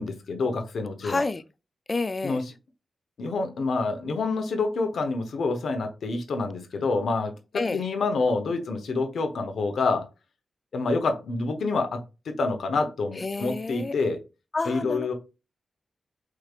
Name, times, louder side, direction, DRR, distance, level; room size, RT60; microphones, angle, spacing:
voice 1, 0.0-1.2 2.2-2.4 3.2-10.1 10.7-12.0 12.2-14.2 14.6-15.1, left 3 dB, 80° left, 0.9 m, -27 dB
voice 2, 1.0-1.4 1.9-2.4 7.5-7.8 13.2-13.9 14.5-15.1, left 3 dB, 40° left, 0.4 m, -29 dB
4.8 x 3.2 x 2.4 m
cardioid pair, 75°, 0 cm